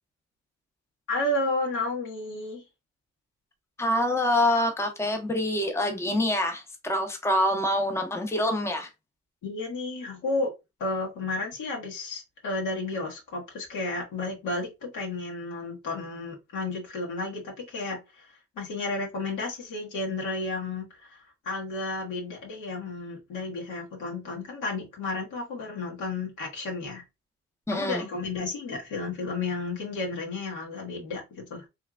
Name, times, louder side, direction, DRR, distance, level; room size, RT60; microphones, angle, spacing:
voice 1, 1.1-2.6 9.4-10.5 10.8-18.3 18.5-21.2 21.4-27.0 27.7-31.6, left 2 dB, 80° left, 1.4 m, -32 dB
voice 2, 3.8-8.9 27.7-28.0, left 1 dB, 10° left, 0.7 m, -26 dB
3.3 x 2.9 x 2.4 m
cardioid pair, 90°, 30 cm